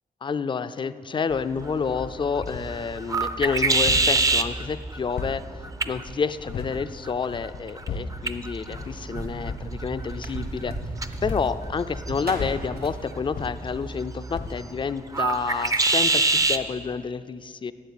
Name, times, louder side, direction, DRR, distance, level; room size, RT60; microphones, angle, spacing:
voice 1, 0.2-5.4 5.8-10.7 11.2-17.7, left 5 dB, 30° left, 13 dB, 0.4 m, -29 dB
sound 1, 1.3-16.7, right 3 dB, 20° right, 0.5 m, -28 dB
sound 2, 1.9-2.9 3.2-6.8 7.2-8.3 8.7-9.0 9.4-9.7 10.6-14.1 14.3-14.7, left 4 dB, 80° left, 0.9 m, -37 dB
sound 3, 8.7-13.9, right 2 dB, 90° right, 1.6 m, -37 dB
11.5 x 7.5 x 9.6 m, 2.1 s
wide cardioid pair, 165°, 15 cm